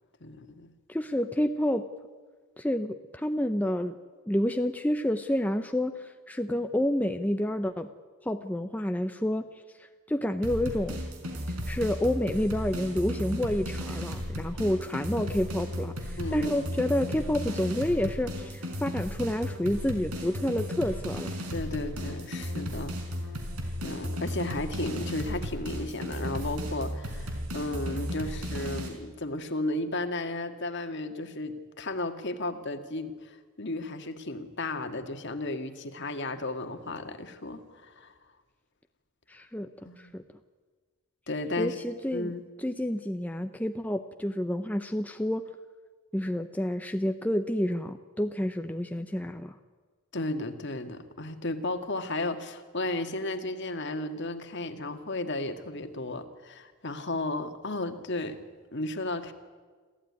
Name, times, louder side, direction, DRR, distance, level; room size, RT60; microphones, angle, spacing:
voice 1, 0.2-0.7 16.2-16.7 21.5-23.0 23.8-38.1 39.9-40.1 41.3-41.8 42.1-42.4 50.1-58.4 58.7-59.3, left 2 dB, 50° left, 8 dB, 1.7 m, -34 dB
voice 2, 0.9-1.9 2.6-4.0 4.3-7.9 8.2-9.5 10.1-11.0 11.7-21.3 39.3-39.7 40.0-40.2 41.6-42.3 42.6-45.5 46.1-49.5, left 1 dB, 5° left, 7 dB, 0.6 m, -29 dB
sound 1, 10.4-28.9, equal, 85° right, 4.9 m, -35 dB
27.5 x 14.5 x 9.6 m, 1.5 s
head